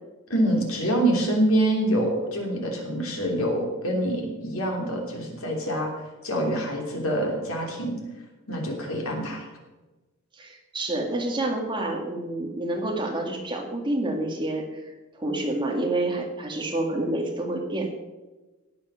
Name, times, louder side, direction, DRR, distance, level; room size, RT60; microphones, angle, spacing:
voice 1, 0.3-5.9 6.2-7.9 8.5-9.5, right 1 dB, 70° left, 1 dB, 3.2 m, -25 dB
voice 2, 10.3-14.8 15.1-17.9, right 2 dB, 20° right, 1 dB, 2.1 m, -28 dB
18.0 x 7.4 x 6.3 m, 1.1 s
head